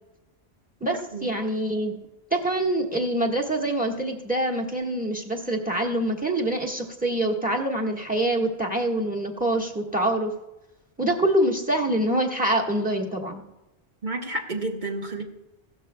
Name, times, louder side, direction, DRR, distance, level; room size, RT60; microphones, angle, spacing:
voice 1, 0.8-2.0 2.3-10.3 11.0-13.4, right 1 dB, 10° right, 2 dB, 1.5 m, -25 dB
voice 2, 14.0-15.2, right 2 dB, 50° right, 2 dB, 1.5 m, -30 dB
16.5 x 12.5 x 2.3 m, 0.96 s
omnidirectional pair, 1.1 m